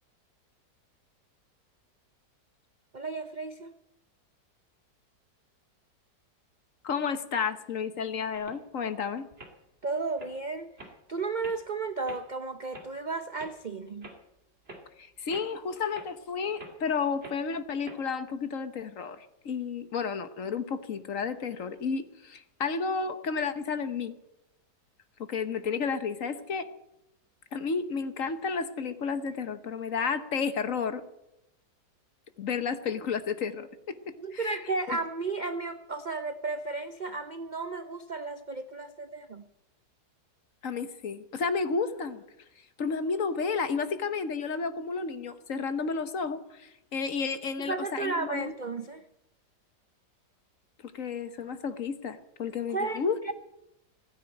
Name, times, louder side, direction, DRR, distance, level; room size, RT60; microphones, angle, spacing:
voice 1, 2.9-3.7 9.8-10.7 11.1-14.1 34.2-39.4 47.7-49.0 52.7-53.3, right 3 dB, 60° right, 10 dB, 0.4 m, -33 dB
voice 2, 6.8-9.3 15.0-24.2 25.3-26.7 27.5-31.0 32.4-34.6 34.9-35.0 40.6-42.2 42.8-48.5 50.9-53.3, left 5 dB, 50° left, 11 dB, 1.3 m, -32 dB
sound 1, 8.3-8.9 9.3-9.5 10.0-10.3 10.8-10.9 11.4-11.5 12.1-12.2 12.7-12.9 13.4-13.5 14.0-14.2 14.6-14.8 15.3-15.6 15.9-16.1 16.6-16.7 17.2-17.4 17.8-17.9, right 2 dB, 35° right, 2.7 m, -46 dB
16.0 x 9.8 x 8.9 m, 0.85 s
omnidirectional pair, 1.9 m